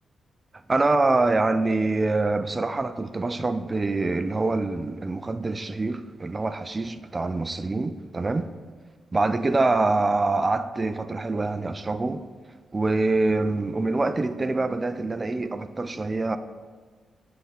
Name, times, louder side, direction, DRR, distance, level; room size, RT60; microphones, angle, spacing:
voice 1, 0.7-8.5 9.1-12.2 12.7-16.4, right 3 dB, 30° right, 0.3 m, -25 dB
9.0 x 3.5 x 4.6 m
cardioid pair, 75°, 0 cm